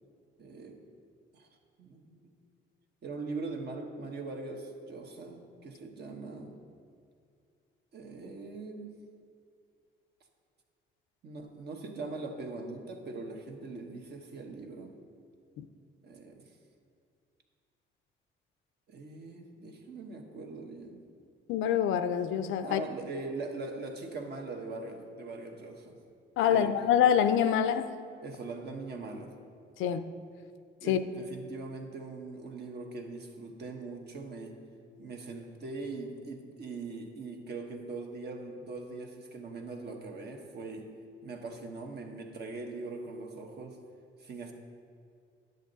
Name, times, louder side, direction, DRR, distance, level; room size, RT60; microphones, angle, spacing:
voice 1, 0.4-0.8 1.3-1.5 1.8-2.3 3.0-6.6 7.9-8.9 11.2-15.0 16.0-16.4 18.9-21.0 22.6-26.0 26.5-26.7 28.2-29.3 30.8-34.6 35.0-40.9 41.2-43.8 44.2-44.5, right 3 dB, 55° right, 3 dB, 1.1 m, -41 dB
voice 2, 21.5-22.8 26.4-27.9 29.8-30.1 30.9-31.0, left 9 dB, 85° left, 10 dB, 0.5 m, -26 dB
10.5 x 6.6 x 4.0 m, 2.3 s
cardioid pair, 90°, 20 cm